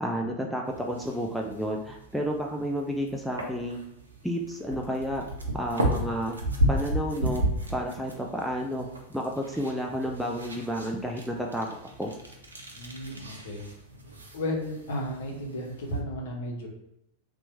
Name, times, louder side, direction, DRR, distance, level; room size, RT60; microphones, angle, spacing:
voice 1, 0.0-3.8 4.2-5.2 5.5-6.4 6.7-7.4 7.7-11.7 12.0-12.1, equal, ahead, 0 dB, 0.4 m, -31 dB
sound 1, 0.6-16.0, right 1 dB, 80° right, 0.6 m, -34 dB
voice 2, 12.8-13.6 14.3-16.7, left 1 dB, 55° left, -1 dB, 0.9 m, -33 dB
2.9 x 2.2 x 4.1 m, 0.76 s
figure-of-eight pair, 90°, 0 cm